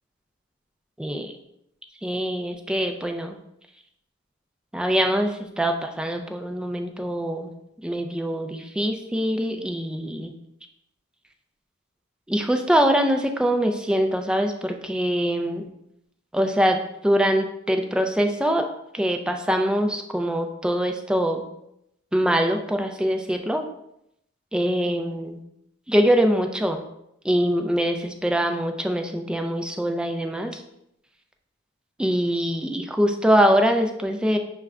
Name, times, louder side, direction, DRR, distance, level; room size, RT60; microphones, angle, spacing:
voice 1, 1.0-1.3 2.0-3.4 4.7-7.5 7.8-10.3 12.3-15.7 16.3-18.7 18.9-21.5 22.1-23.6 24.5-25.4 25.9-26.8 27.2-30.6 32.0-34.4, equal, 5° right, 5 dB, 0.3 m, -23 dB
6.1 x 2.4 x 3.3 m, 0.79 s
head